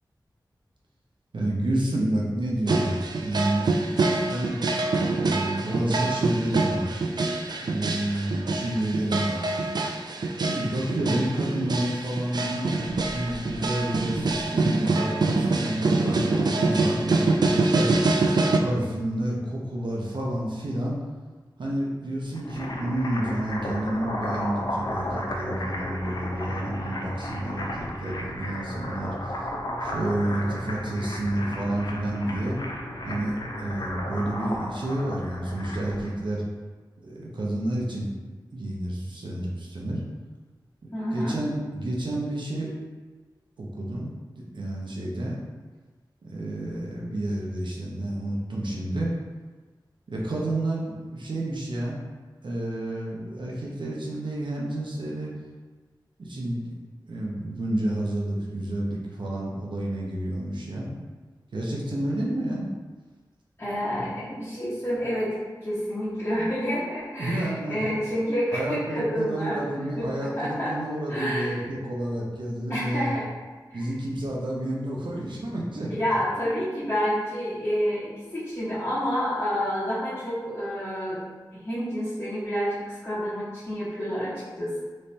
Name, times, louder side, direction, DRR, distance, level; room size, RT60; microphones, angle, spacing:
voice 1, 1.3-3.7 4.3-4.6 5.2-7.0 7.6-9.5 10.3-18.1 18.6-21.0 21.6-29.5 29.8-32.6 33.0-36.4 37.0-38.1 38.5-40.0 41.1-42.7 43.6-44.1 44.4-45.4 46.2-49.2 50.1-52.0 52.4-55.3 56.2-56.8 57.0-60.9 61.5-62.7 67.2-67.9 68.5-73.1 73.7-75.9, right 1 dB, 80° right, -3 dB, 0.7 m, -30 dB
sound 1, 2.7-18.6, right 3 dB, 60° right, 0.3 m, -25 dB
sound 2, 22.2-36.1, left 1 dB, 55° left, 0.6 m, -34 dB
voice 2, 40.9-41.4 63.6-69.7 70.0-70.8 71.1-71.6 72.7-73.3 73.7-73.9 75.9-81.2 81.5-84.8, equal, 25° left, -13 dB, 1.4 m, -29 dB
3.2 x 3.2 x 2.8 m, 1.3 s
cardioid pair, 45°, 8 cm